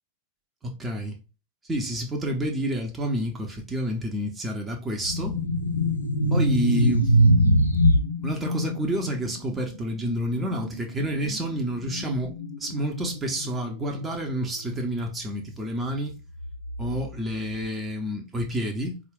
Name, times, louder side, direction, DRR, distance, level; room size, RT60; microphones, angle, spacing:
voice 1, 0.6-1.2 1.7-5.4 6.3-7.2 8.2-12.3 12.6-16.2 16.8-19.0, right 1 dB, 15° right, 0.7 m, -29 dB
sound 1, 5.0-15.0 15.3-15.6 16.3-17.3, equal, 85° left, 0.6 m, -25 dB
4.3 x 2.4 x 3.6 m
figure-of-eight pair, 90°, 0 cm